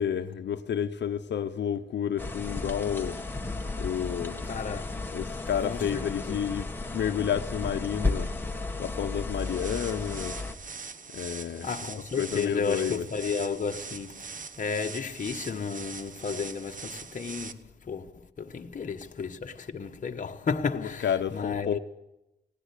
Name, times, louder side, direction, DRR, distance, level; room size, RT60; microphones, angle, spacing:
voice 1, 0.0-3.2 3.8-4.5 5.1-8.3 8.8-10.4 11.1-11.7 12.2-13.0 20.7-21.8, left 8 dB, 80° left, 0.8 m, -30 dB
sound 1, 2.2-10.5, left 3 dB, 10° left, 1.6 m, -34 dB
voice 2, 4.5-5.0 5.6-6.5 11.6-21.8, left 5 dB, 45° left, 1.3 m, -33 dB
sound 2, 9.4-17.5, right 5 dB, 50° right, 1.1 m, -42 dB
18.5 x 17.5 x 8.4 m
wide cardioid pair, 130°, 18 cm